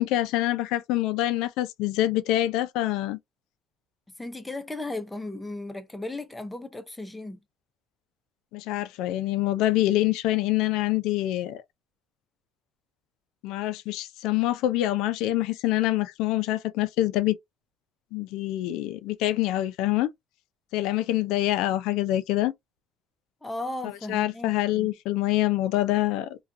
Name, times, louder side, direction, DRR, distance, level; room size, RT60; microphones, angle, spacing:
voice 1, 0.0-3.2 8.5-11.6 13.4-17.4 18.1-20.1 20.7-22.5 23.8-26.4, left 15 dB, 75° left, 0.4 m, -25 dB
voice 2, 4.2-7.4 23.4-24.9, left 2 dB, 10° left, 0.6 m, -36 dB
2.4 x 2.3 x 2.5 m
cardioid pair, 120°, 0 cm